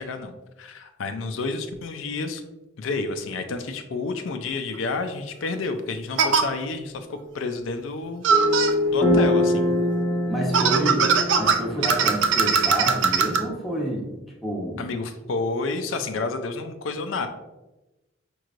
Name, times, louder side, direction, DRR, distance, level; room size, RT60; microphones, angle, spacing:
voice 1, 0.0-2.4 2.8-8.2 8.9-9.7 14.8-17.3, left 3 dB, 80° left, 7 dB, 0.4 m, -30 dB
sound 1, 4.7-4.8 6.2-6.4 8.2-8.7 10.5-13.4, right 6 dB, 70° right, 0.4 m, -20 dB
sound 2, 8.3-12.7, left 1 dB, 15° left, 0.5 m, -24 dB
voice 2, 10.3-14.1 14.4-14.8, right 1 dB, ahead, -4 dB, 0.9 m, -28 dB
5.2 x 3.1 x 2.4 m, 1.0 s
head